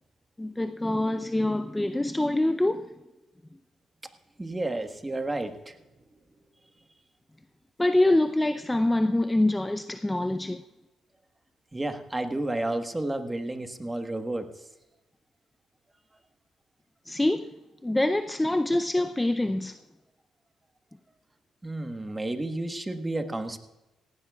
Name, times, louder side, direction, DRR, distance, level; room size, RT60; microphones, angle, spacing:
voice 1, 0.4-2.9 7.8-10.6 17.1-17.5 17.8-19.8, left 1 dB, 10° left, 0.5 m, -25 dB
voice 2, 4.4-5.8 11.7-14.5 21.6-23.6, right 2 dB, 15° right, 1.3 m, -31 dB
18.5 x 16.0 x 2.4 m
cardioid pair, 90°, 0 cm